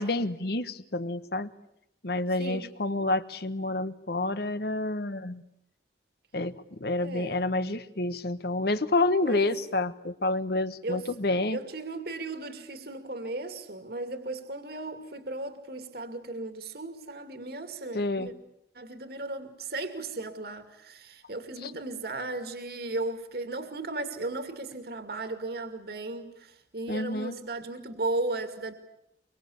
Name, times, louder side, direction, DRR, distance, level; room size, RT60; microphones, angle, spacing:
voice 1, 0.0-1.5 2.0-5.4 6.3-11.6 17.9-18.3 21.6-21.7 26.9-27.3, left 2 dB, 60° left, 1.2 m, -29 dB
voice 2, 2.4-2.7 7.0-7.5 9.2-9.5 10.8-11.1 11.5-18.3 18.7-28.7, right 2 dB, 60° right, 2.4 m, -36 dB
25.0 x 23.5 x 8.5 m
head